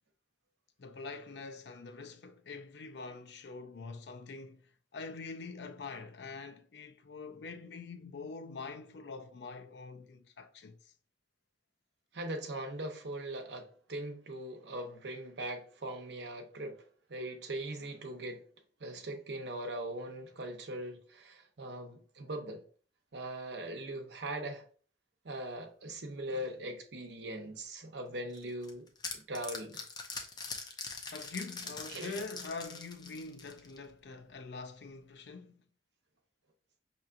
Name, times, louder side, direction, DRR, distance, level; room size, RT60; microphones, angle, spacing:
voice 1, 0.8-4.6 4.9-10.9 19.0-19.1 31.1-35.6, left 4 dB, 70° left, 0.5 m, -45 dB
voice 2, 12.1-16.8 17.1-18.4 18.8-22.6 23.1-24.6 25.2-28.9 29.1-29.8 31.9-32.1, right 1 dB, 75° right, 0.8 m, -40 dB
sound 1, 28.3-33.9, left 4 dB, 25° left, 0.5 m, -43 dB
5.6 x 2.9 x 2.5 m
head